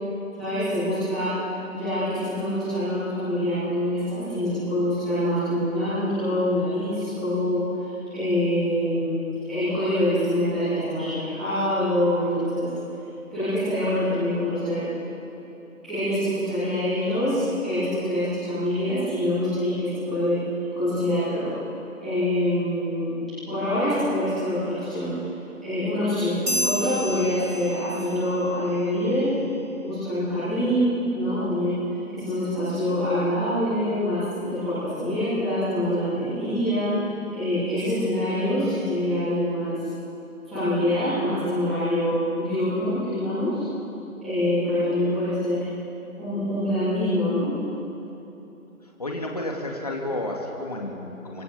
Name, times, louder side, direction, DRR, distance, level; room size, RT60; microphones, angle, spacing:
voice 1, 0.4-1.3 1.7-7.6 8.1-12.7 13.3-14.8 15.8-20.4 20.7-21.6 22.0-23.1 23.5-25.1 25.6-26.3 26.6-29.3 29.8-31.8 32.1-36.9 37.3-39.8 40.5-43.6 44.2-45.6 46.2-47.5, left 1 dB, ahead, -22 dB, 3.1 m, -25 dB
sound 1, 26.5-28.3, equal, 80° right, 3.1 m, -29 dB
voice 2, 49.0-51.4, left 1 dB, 25° left, 0 dB, 2.5 m, -31 dB
28.0 x 25.5 x 7.0 m, 2.9 s
figure-of-eight pair, 175°, 43 cm